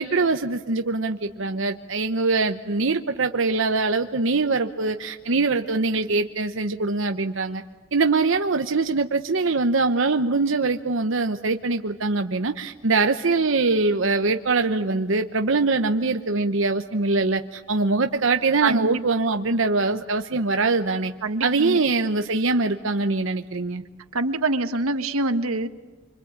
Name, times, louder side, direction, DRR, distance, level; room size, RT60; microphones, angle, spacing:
voice 1, 0.0-7.6 7.9-21.1 21.4-23.8, right 3 dB, 60° right, 6 dB, 0.9 m, -23 dB
voice 2, 18.6-19.0 21.2-21.8 24.1-25.7, right 2 dB, 90° right, 9 dB, 1.5 m, -25 dB
26.0 x 25.0 x 8.7 m, 1.3 s
head